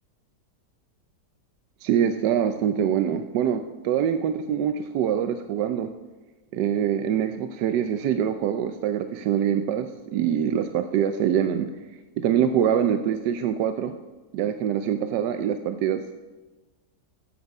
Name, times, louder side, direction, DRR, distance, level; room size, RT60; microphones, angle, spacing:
voice 1, 1.8-5.9 6.5-11.7 12.2-13.9 14.3-16.2, right 9 dB, 90° right, 8 dB, 1.2 m, -24 dB
14.5 x 8.8 x 5.3 m, 1.2 s
omnidirectional pair, 1.8 m